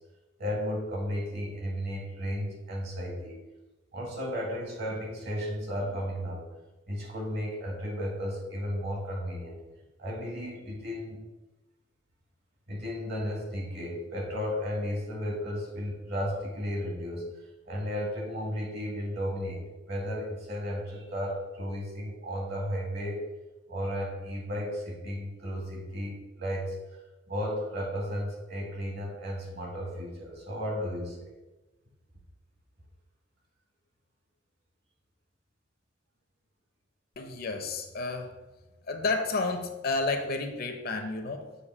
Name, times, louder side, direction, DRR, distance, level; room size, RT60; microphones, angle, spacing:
voice 1, 0.4-3.4 3.9-6.4 6.9-9.6 10.0-11.2 12.7-17.3 17.7-23.2 23.7-26.8 27.3-31.3, equal, 60° right, 0 dB, 1.5 m, -34 dB
voice 2, 37.2-38.3 38.9-41.5, left 3 dB, 55° left, 5 dB, 0.7 m, -31 dB
6.6 x 2.7 x 5.4 m, 1.1 s
head